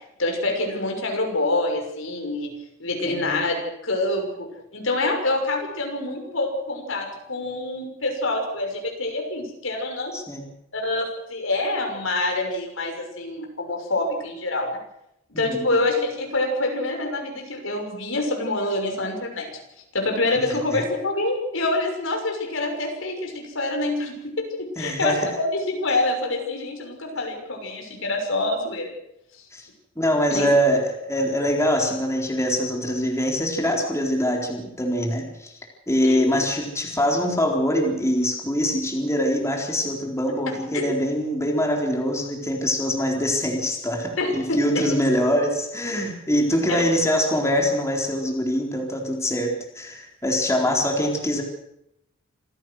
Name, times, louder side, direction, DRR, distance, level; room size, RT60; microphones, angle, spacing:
voice 1, 0.2-2.5 2.8-10.1 10.7-14.8 15.3-19.5 19.9-28.9 29.3-29.5 30.3-30.5 36.0-36.4 40.7-40.8 44.2-44.3 46.7-46.8, left 2 dB, 80° left, 3 dB, 6.3 m, -26 dB
voice 2, 3.0-3.4 10.1-10.5 15.3-15.7 20.4-20.8 24.8-25.3 29.5-29.7 30.0-35.5 35.9-51.4, equal, 15° left, 0 dB, 4.1 m, -24 dB
27.0 x 16.5 x 6.4 m, 0.81 s
head